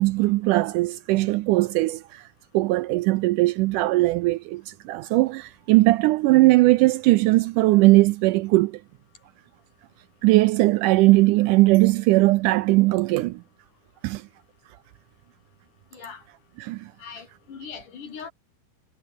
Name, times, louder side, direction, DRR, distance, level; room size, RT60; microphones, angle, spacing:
voice 1, 0.0-2.2 2.5-8.8 10.2-13.4 14.0-14.2 16.6-16.9, right 19 dB, 80° right, 1.9 m, -19 dB
voice 2, 15.9-16.2 17.0-18.3, left 6 dB, 65° left, 5.1 m, -40 dB
omnidirectional pair, 4.0 m